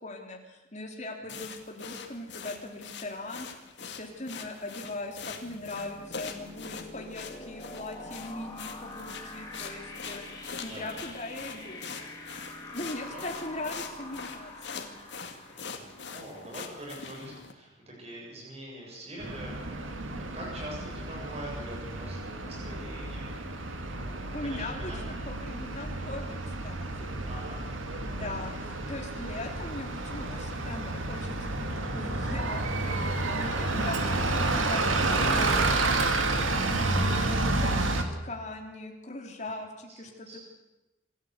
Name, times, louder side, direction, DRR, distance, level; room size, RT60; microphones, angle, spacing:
voice 1, 0.0-3.5 3.8-11.8 12.7-14.9 24.3-27.2 28.0-36.1 36.5-40.4, left 2 dB, 35° left, 2 dB, 3.3 m, -40 dB
sound 1, 1.3-17.5, left 5 dB, 60° left, 2.3 m, -43 dB
sound 2, 5.1-16.8, left 2 dB, 20° left, 3.6 m, -45 dB
voice 2, 10.6-10.9 12.7-12.9 13.1-13.3 15.5-25.0 27.3-27.6 35.7-35.9 39.9-40.4, right 1 dB, 30° right, -2 dB, 7.3 m, -44 dB
Bus, 19.2-38.0, right 2 dB, 85° right, 2.4 m, -30 dB
26.5 x 13.0 x 8.2 m, 1.0 s
head